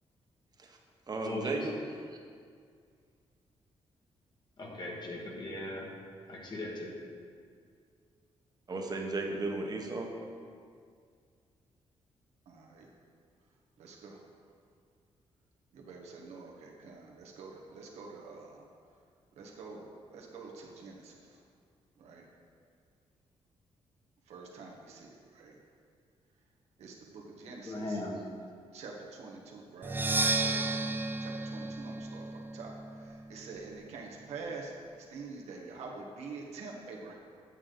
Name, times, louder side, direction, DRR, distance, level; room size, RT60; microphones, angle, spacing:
voice 1, 1.1-1.7 8.7-10.1, right 2 dB, 40° right, 1 dB, 1.1 m, -34 dB
voice 2, 4.6-5.9 6.3-7.0 27.7-28.2, left 2 dB, 45° left, -1 dB, 1.4 m, -38 dB
voice 3, 12.5-12.9 13.8-14.2 15.7-18.6 19.4-19.9 20.1-21.4 22.0-22.2 24.3-25.6 26.8-28.0 28.7-30.1 30.4-30.9 31.2-37.1, right 4 dB, 90° right, -1 dB, 1.2 m, -46 dB
Percussion, 29.8-33.6, right 2 dB, 20° right, 0.4 m, -33 dB
8.4 x 6.6 x 3.8 m, 2.2 s
cardioid pair, 95°, 11 cm